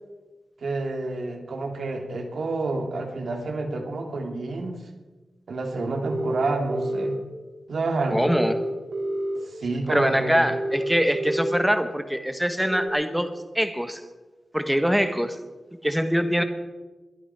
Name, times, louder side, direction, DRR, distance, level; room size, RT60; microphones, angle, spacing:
voice 1, 0.6-4.9 5.5-7.2 7.7-8.3 9.4-10.4, right 2 dB, 70° right, 3 dB, 2.7 m, -29 dB
sound 1, 6.0-7.2 8.3-9.4 10.5-11.6 12.7-12.9, right 1 dB, 50° right, 3.3 m, -28 dB
voice 2, 8.1-8.6 9.9-13.3 13.5-14.0 14.5-15.4 15.8-16.4, equal, 5° right, 8 dB, 1.4 m, -23 dB
22.5 x 11.5 x 4.8 m, 1.2 s
wide cardioid pair, 115°, 0 cm